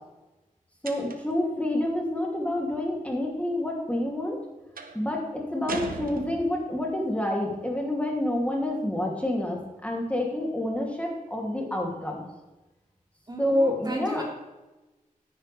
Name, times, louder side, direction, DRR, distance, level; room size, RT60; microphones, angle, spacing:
voice 1, 0.8-4.4 4.9-12.2 13.4-14.2, left 1 dB, 10° left, -1 dB, 2.8 m, -28 dB
sound 1, 0.8-1.4 4.8-5.1 5.7-6.8, right 4 dB, 90° right, 1.2 m, -38 dB
voice 2, 13.3-14.2, right 1 dB, 30° right, 0 dB, 2.8 m, -34 dB
13.0 x 11.0 x 3.5 m, 1.1 s
wide cardioid pair, 80°, 14 cm